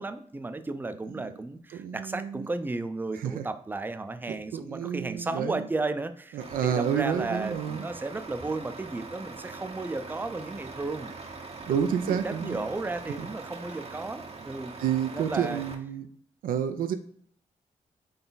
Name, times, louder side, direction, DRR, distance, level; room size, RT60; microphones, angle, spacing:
voice 1, 0.0-11.1 11.4-14.8 15.1-15.6, right 2 dB, 15° right, 10 dB, 0.5 m, -34 dB
voice 2, 1.7-2.5 3.1-3.4 4.3-5.7 6.3-7.9 11.7-12.6 13.2-13.3 14.8-16.1 16.4-16.9, right 8 dB, 80° right, 9 dB, 0.4 m, -30 dB
Truck, 6.4-15.8, right 3 dB, 45° right, 0.7 m, -42 dB
4.0 x 3.3 x 3.9 m, 0.62 s
supercardioid pair, 55°, 14 cm